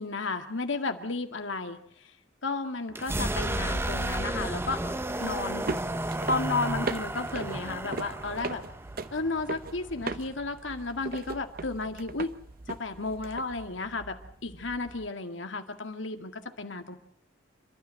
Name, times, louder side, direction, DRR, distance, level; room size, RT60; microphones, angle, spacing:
voice 1, 0.0-1.8 2.4-4.8 5.2-5.7 6.3-8.6 9.1-12.3 12.7-17.0, left 3 dB, 80° left, 7 dB, 2.0 m, -33 dB
sound 1, 2.9-10.6, right 1 dB, 15° right, 0.9 m, -33 dB
sound 2, 5.1-15.1, right 3 dB, 50° right, 0.9 m, -40 dB
28.5 x 13.0 x 7.7 m, 0.69 s
head